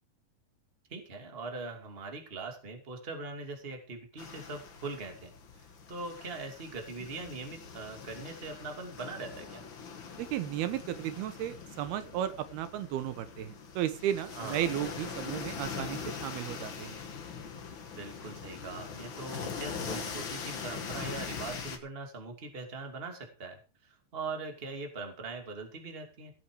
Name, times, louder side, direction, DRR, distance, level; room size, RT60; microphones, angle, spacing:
voice 1, 0.9-9.6 14.3-14.7 17.9-26.3, right 3 dB, 20° right, 4 dB, 1.9 m, -41 dB
sound 1, 4.2-21.8, left 6 dB, 50° left, 1.4 m, -42 dB
voice 2, 10.2-17.0, right 11 dB, 80° right, 12 dB, 2.8 m, -34 dB
18.0 x 8.4 x 4.8 m, 0.35 s
omnidirectional pair, 4.6 m